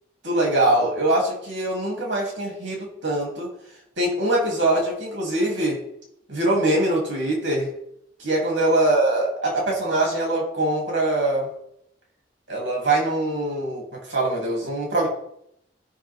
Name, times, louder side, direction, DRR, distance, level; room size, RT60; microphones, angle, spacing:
voice 1, 0.2-3.5 4.0-5.8 6.3-7.7 8.2-11.5 12.5-15.1, right 1 dB, 80° right, -1 dB, 3.0 m, -23 dB
15.5 x 5.6 x 3.6 m, 0.74 s
head